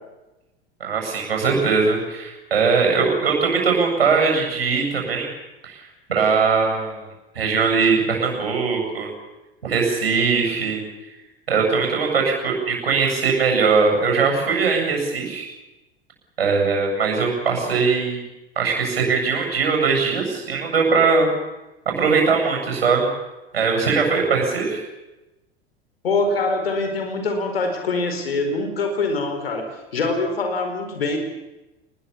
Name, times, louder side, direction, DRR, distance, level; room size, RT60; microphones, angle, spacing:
voice 1, 0.8-5.3 5.6-5.8 6.1-7.0 7.3-9.1 9.6-10.8 11.5-15.5 16.4-18.2 18.6-21.3 22.0-23.1 23.5-24.8, right 5 dB, 70° right, 2 dB, 7.9 m, -20 dB
voice 2, 26.0-31.2, left 3 dB, 70° left, 5 dB, 4.8 m, -24 dB
26.5 x 20.5 x 7.2 m, 1.0 s
figure-of-eight pair, 80°, 31 cm